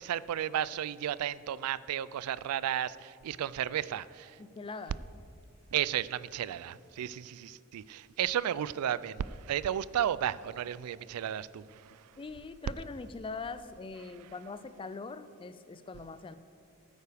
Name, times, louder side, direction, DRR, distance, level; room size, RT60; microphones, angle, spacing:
voice 1, 0.0-4.4 5.7-12.2 14.2-14.3, right 10 dB, 90° right, 18 dB, 0.3 m, -33 dB
voice 2, 4.4-4.9 12.2-16.4, left 4 dB, 25° left, 12 dB, 0.4 m, -42 dB
16.0 x 9.2 x 3.4 m, 2.4 s
head